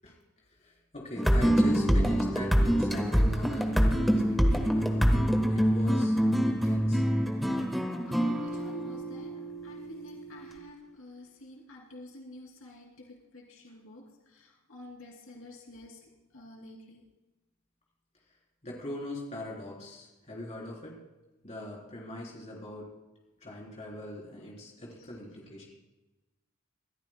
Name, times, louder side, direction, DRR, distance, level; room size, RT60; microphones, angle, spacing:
voice 1, 0.6-5.1 5.5-7.0 18.6-21.0 21.4-22.9 23.4-25.6, left 1 dB, 35° left, -3 dB, 3.8 m, -41 dB
sound 1, 1.2-10.6, equal, ahead, 1.2 m, -26 dB
voice 2, 8.1-9.3 9.6-14.0 14.3-16.0 16.3-17.0, left 1 dB, 85° left, -1 dB, 2.8 m, -49 dB
26.0 x 13.5 x 2.2 m, 1.1 s
head